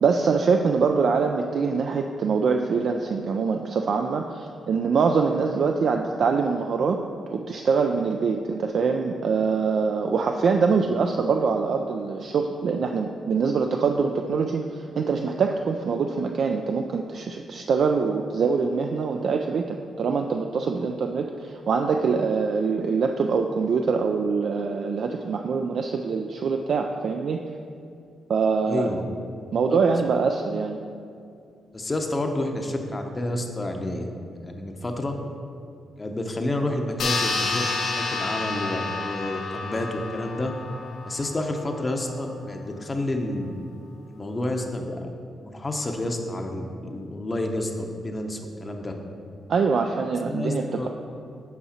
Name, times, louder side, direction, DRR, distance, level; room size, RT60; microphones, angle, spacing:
voice 1, 0.0-7.0 7.3-27.4 28.3-28.9 29.5-30.8 49.5-50.9, right 5 dB, 65° right, 3 dB, 0.3 m, -24 dB
voice 2, 28.7-29.0 29.7-29.8 31.7-34.1 34.4-35.2 36.0-40.5 41.0-43.5 44.1-45.1 45.4-48.9 50.2-50.9, left 1 dB, 25° left, 3 dB, 0.7 m, -29 dB
sound 1, 37.0-41.9, left 3 dB, 75° left, 0.9 m, -30 dB
8.3 x 4.8 x 4.3 m, 2.4 s
cardioid pair, 95°, 0 cm